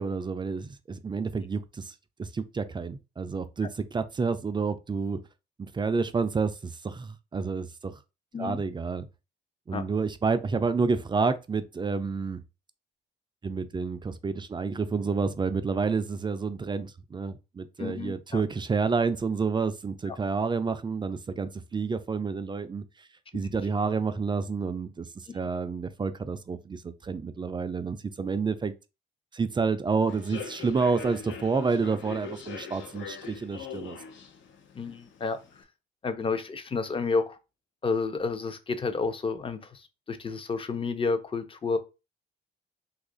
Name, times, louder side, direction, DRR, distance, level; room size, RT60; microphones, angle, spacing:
voice 1, 0.0-5.2 5.6-8.0 8.4-9.1 9.7-12.4 13.4-23.1 23.3-28.7 29.3-34.0, right 4 dB, 25° right, 0.4 m, -29 dB
voice 2, 17.8-18.4 20.1-20.2 34.7-35.4 36.0-37.4 37.8-41.8, left 4 dB, 25° left, 0.6 m, -30 dB
Human voice / Subway metro underground, 30.1-35.6, left 6 dB, 75° left, 0.7 m, -42 dB
2.8 x 2.4 x 3.7 m
cardioid pair, 90°, 20 cm